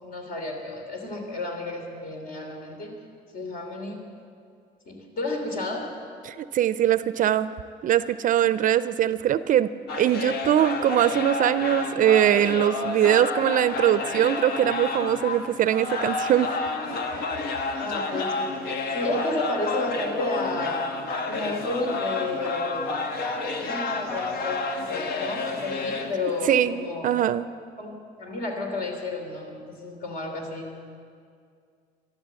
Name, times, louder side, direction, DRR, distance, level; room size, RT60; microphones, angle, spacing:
voice 1, 0.0-2.9 3.3-4.0 4.9-5.9 17.8-18.5 18.9-20.9 21.3-22.9 23.6-27.1 27.8-27.9 28.2-30.7, left 2 dB, 60° left, 2 dB, 3.0 m, -31 dB
voice 2, 6.3-7.5 7.8-9.7 10.0-16.5 17.2-17.3 26.5-27.5, right 11 dB, 50° right, 14 dB, 0.4 m, -22 dB
sound 1, 9.9-26.6, left 3 dB, 80° left, 1.3 m, -30 dB
13.5 x 12.0 x 7.5 m, 2.3 s
cardioid pair, 110°, 17 cm